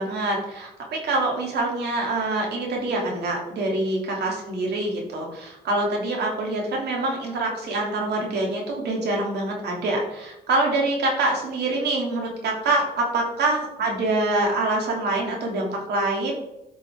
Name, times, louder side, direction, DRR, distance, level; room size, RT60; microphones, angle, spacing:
voice 1, 0.0-12.8 13.1-16.3, right 2 dB, 85° right, -1 dB, 2.7 m, -25 dB
13.0 x 5.7 x 3.6 m, 0.89 s
cardioid pair, 110°, 17 cm